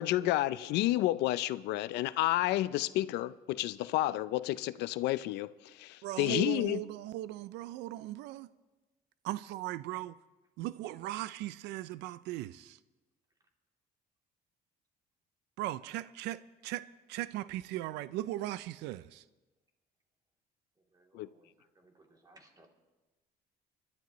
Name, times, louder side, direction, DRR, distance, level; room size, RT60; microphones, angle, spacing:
voice 1, 0.0-5.5 5.7-6.8 21.1-21.3, left 15 dB, 85° left, 0.5 m, -30 dB
voice 2, 6.0-8.5 9.2-10.2 10.6-12.8 15.6-19.2, right 15 dB, 90° right, 0.4 m, -38 dB
voice 3, 20.9-22.7, right 2 dB, 20° right, 2.9 m, -63 dB
30.0 x 12.0 x 3.1 m
cardioid pair, 110°, 17 cm